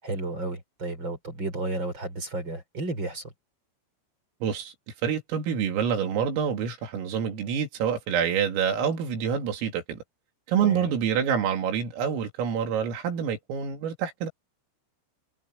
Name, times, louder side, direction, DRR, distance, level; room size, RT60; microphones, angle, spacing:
voice 1, 0.0-3.2 10.6-10.9, right 2 dB, 25° right, 5.3 m, -32 dB
voice 2, 4.4-4.7 5.0-10.0 10.5-14.3, right 7 dB, 80° right, 5.6 m, -27 dB
omnidirectional pair, 5.9 m